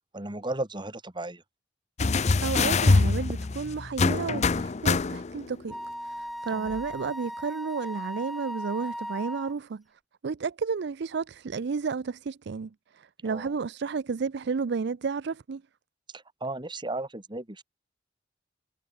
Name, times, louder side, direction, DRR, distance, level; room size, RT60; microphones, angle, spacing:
voice 1, 0.0-1.4 6.5-6.8 13.2-13.5 16.1-17.6, right 2 dB, 25° right, 2.6 m, -35 dB
sound 1, 2.0-5.5 6.7-6.8, left 3 dB, 40° left, 0.5 m, -24 dB
voice 2, 2.4-5.7 6.0-9.8 10.2-15.6, right 5 dB, 65° right, 0.5 m, -32 dB
Wind instrument woodwind instrument, 5.7-9.6, equal, ahead, 0.7 m, -37 dB
head